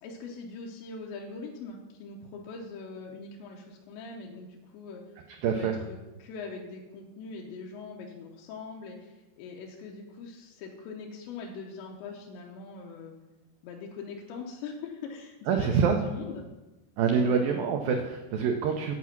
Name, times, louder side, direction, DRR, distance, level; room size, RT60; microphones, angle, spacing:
voice 1, 0.0-5.0 5.5-13.1 13.6-16.5 17.2-17.4, left 4 dB, 85° left, -1 dB, 3.2 m, -42 dB
voice 2, 5.3-5.7 15.5-16.0 17.0-19.0, right 6 dB, 90° right, 4 dB, 2.0 m, -26 dB
8.4 x 8.4 x 5.8 m, 1.1 s
omnidirectional pair, 5.0 m